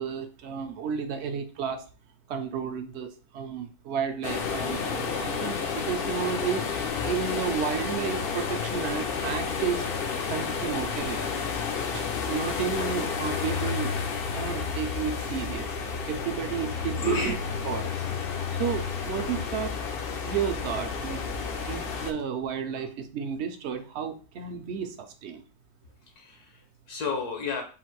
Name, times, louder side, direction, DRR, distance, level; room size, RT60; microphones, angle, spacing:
voice 1, 0.0-1.9 2.3-6.7 7.0-9.9 10.3-11.2 11.9-13.9 14.3-15.7 16.1-17.3 17.7-17.9 18.5-19.8 20.2-21.2 21.7-25.4, right 7 dB, 60° right, 6 dB, 0.8 m, -32 dB
sound 1, 4.2-22.1, left 5 dB, 60° left, 0.6 m, -31 dB
voice 2, 17.0-17.3 26.1-27.6, left 4 dB, 80° left, 2 dB, 1.5 m, -32 dB
3.9 x 2.5 x 4.5 m, 0.37 s
omnidirectional pair, 1.6 m